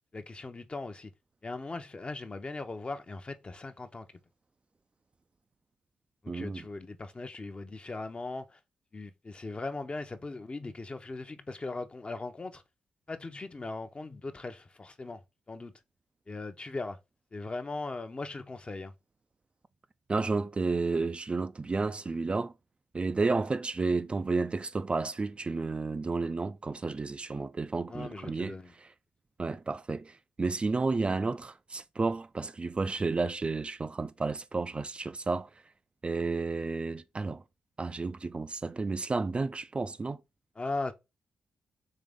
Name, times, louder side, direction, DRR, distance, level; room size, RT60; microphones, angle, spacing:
voice 1, 0.1-1.1 1.4-4.1 6.2-8.6 8.9-12.6 13.1-15.2 15.5-15.7 16.3-17.0 17.3-18.9 27.9-28.7 40.6-40.9, left 3 dB, 30° left, 0.7 m, -39 dB
voice 2, 6.3-6.7 20.1-22.5 22.9-28.9 29.4-35.5 36.0-37.4 37.8-40.2, right 3 dB, 30° right, 0.3 m, -31 dB
3.7 x 3.3 x 3.6 m
hypercardioid pair, 45°, 4 cm